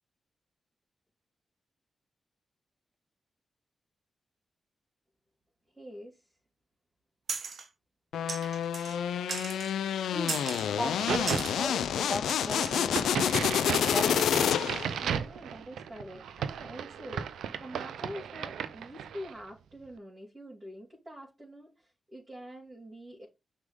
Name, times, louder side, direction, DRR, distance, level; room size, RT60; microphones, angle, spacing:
voice 1, 5.7-6.2 13.7-14.7 15.0-23.3, equal, 30° right, 3.1 m, -45 dB
sound 1, 7.3-7.7 8.3-9.0 9.3-9.7 10.3-10.7 11.3-11.6 12.3-12.9, right 5 dB, 65° right, 1.0 m, -37 dB
sound 2, 8.1-15.0, left 9 dB, 90° left, 0.4 m, -29 dB
voice 2, 10.8-12.9 13.9-14.2, left 1 dB, 5° left, 2.1 m, -36 dB
Crack, 10.8-19.4, right 8 dB, 85° right, 0.5 m, -36 dB
6.2 x 3.7 x 5.1 m
cardioid pair, 50°, 0 cm